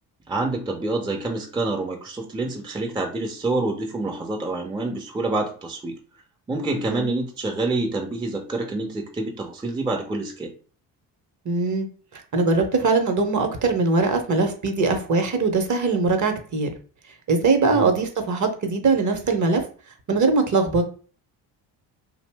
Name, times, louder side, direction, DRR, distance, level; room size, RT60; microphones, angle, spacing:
voice 1, 0.3-6.0 6.5-10.5 17.7-17.9, right 2 dB, 10° right, 2 dB, 0.5 m, -27 dB
voice 2, 6.7-7.1 11.4-11.9 12.1-16.7 17.3-19.6 20.1-20.8, right 3 dB, 40° right, 5 dB, 0.7 m, -21 dB
2.6 x 2.0 x 3.3 m, 0.40 s
supercardioid pair, 65°, 47 cm